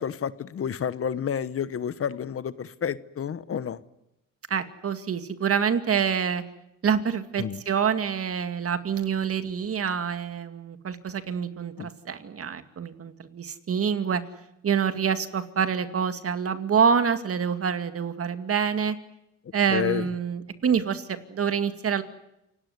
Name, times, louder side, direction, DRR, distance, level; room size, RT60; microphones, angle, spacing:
voice 1, 0.0-3.8 7.4-7.6 11.8-11.9 19.7-20.1, left 8 dB, 50° left, 16 dB, 1.1 m, -30 dB
voice 2, 4.5-6.4 6.8-14.2 14.6-19.0 19.5-22.0, right 7 dB, 50° right, 10 dB, 2.3 m, -26 dB
28.5 x 17.5 x 9.5 m, 0.87 s
cardioid pair, 90°, 30 cm